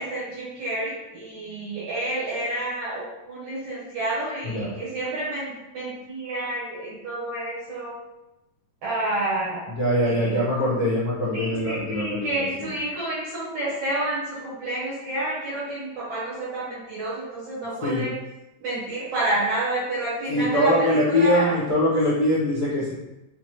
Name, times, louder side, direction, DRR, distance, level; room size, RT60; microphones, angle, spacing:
voice 1, 0.0-7.9 8.8-9.6 10.0-10.4 11.3-18.1 18.6-21.6, right 1 dB, 65° right, -8 dB, 1.7 m, -29 dB
voice 2, 9.7-12.7 17.8-18.1 20.3-22.9, left 1 dB, 80° left, -10 dB, 0.9 m, -23 dB
5.8 x 2.1 x 3.0 m, 0.97 s
omnidirectional pair, 3.7 m